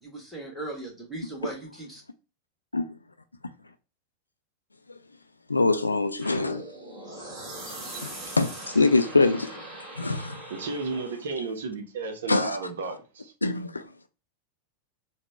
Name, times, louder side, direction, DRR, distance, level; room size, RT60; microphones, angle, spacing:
voice 1, 0.0-2.0, right 2 dB, ahead, 1.5 m, -38 dB
voice 2, 5.5-6.7 8.0-9.6 10.0-10.4 12.3-12.6 13.4-13.8, left 3 dB, 80° left, 0.3 m, -24 dB
sound 1, 6.2-11.3, right 2 dB, 30° right, 1.7 m, -41 dB
voice 3, 10.5-13.3, right 4 dB, 60° right, 0.7 m, -33 dB
3.8 x 2.1 x 3.3 m
figure-of-eight pair, 90°, 0 cm